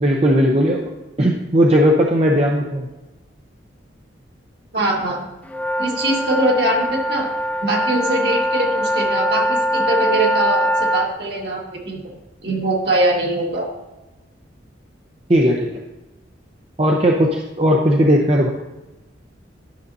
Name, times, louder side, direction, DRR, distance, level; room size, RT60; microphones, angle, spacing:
voice 1, 0.0-0.9 1.2-2.9 15.3-15.7 16.8-18.5, equal, 30° right, 0 dB, 0.6 m, -16 dB
voice 2, 4.7-5.3 5.8-7.3 7.6-12.1 12.4-13.7, right 1 dB, 60° right, -1 dB, 1.7 m, -22 dB
sound 1, 5.5-11.1, equal, 10° left, 0.3 m, -22 dB
11.5 x 6.4 x 2.7 m, 1.0 s
head